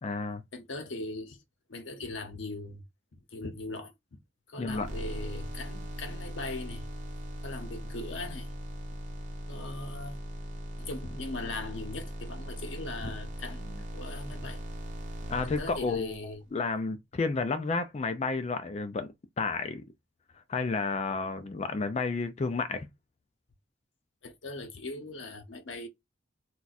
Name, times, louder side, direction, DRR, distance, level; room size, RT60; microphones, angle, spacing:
voice 1, 0.0-0.4 4.6-4.9 15.3-19.1 19.4-19.8 20.5-22.9, left 4 dB, 35° left, 0.3 m, -31 dB
voice 2, 0.5-1.4 1.7-2.8 3.1-3.9 4.5-6.9 7.4-8.6 9.5-10.2 10.8-14.6 15.4-16.4 24.2-25.9, left 2 dB, 80° left, 0.8 m, -40 dB
sound 1, 4.7-16.3, equal, 40° right, 1.0 m, -39 dB
2.4 x 2.3 x 4.0 m
head